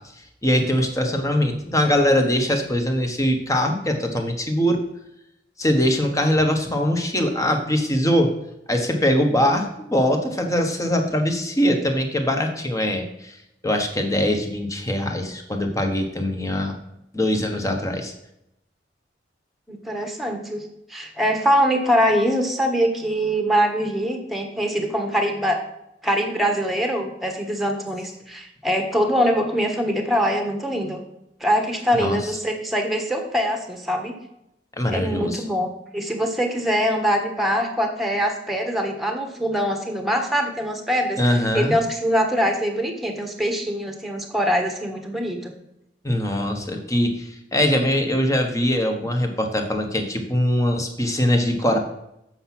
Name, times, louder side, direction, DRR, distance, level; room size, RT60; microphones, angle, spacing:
voice 1, 0.4-4.8 5.6-8.3 8.7-13.3 13.6-16.8 17.1-18.1 32.0-32.2 34.8-35.4 41.2-41.7 46.0-51.8, left 1 dB, 20° left, 4 dB, 1.2 m, -22 dB
voice 2, 19.7-20.6 20.9-25.6 26.0-31.0 31.4-34.1 34.9-45.5, equal, ahead, 3 dB, 1.3 m, -23 dB
7.8 x 5.8 x 5.9 m, 0.82 s
head